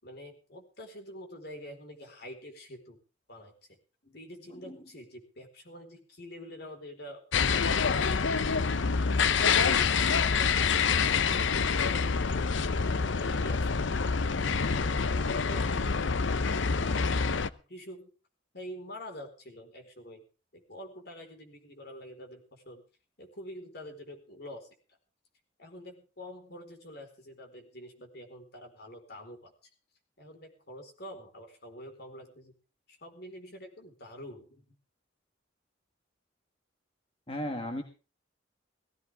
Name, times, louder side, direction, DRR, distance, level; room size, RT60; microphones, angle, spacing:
voice 1, 0.0-3.0 3.3-3.5 4.0-8.7 9.4-10.6 11.0-14.0 14.6-15.9 16.3-17.2 17.5-18.1 18.5-20.2 20.5-22.8 23.2-24.7 25.6-29.5 30.2-32.5 32.9-34.7, equal, 55° left, 3 dB, 4.5 m, -46 dB
sound 1, 7.3-17.5, left 5 dB, 70° left, 0.7 m, -26 dB
voice 2, 37.3-37.8, left 1 dB, 30° left, 5 dB, 1.7 m, -34 dB
18.5 x 15.5 x 3.6 m, 0.35 s
head